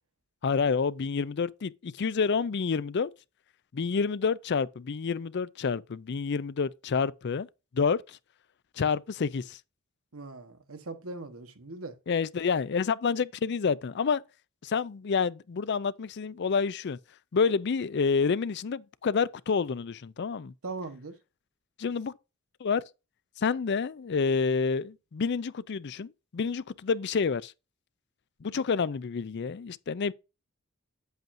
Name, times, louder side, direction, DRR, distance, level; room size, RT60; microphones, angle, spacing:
voice 1, 0.4-3.1 3.7-7.5 7.7-8.2 8.8-9.6 12.1-14.2 14.6-17.0 17.3-20.5 21.8-22.1 22.6-22.8 23.4-27.5 28.4-30.1, left 5 dB, 55° left, 0.4 m, -28 dB
voice 2, 10.1-12.0 20.6-21.2, right 3 dB, 80° right, 1.3 m, -40 dB
8.9 x 8.0 x 2.6 m
head